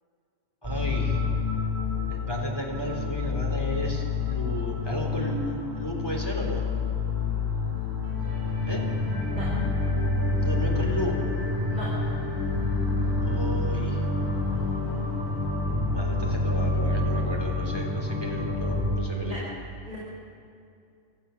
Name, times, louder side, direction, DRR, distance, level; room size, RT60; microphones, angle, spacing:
voice 1, 0.6-1.2 2.1-6.6 8.7-8.8 10.4-11.1 13.2-14.1 15.9-19.5, equal, 15° left, -1 dB, 3.5 m, -33 dB
sound 1, 0.6-19.0, left 3 dB, 15° right, 4.9 m, -28 dB
voice 2, 7.2-7.6 9.3-9.5 11.7-11.9 19.2-19.4 19.9-20.0, equal, 35° right, -8 dB, 5.4 m, -39 dB
26.5 x 14.0 x 7.2 m, 2.4 s
omnidirectional pair, 1.4 m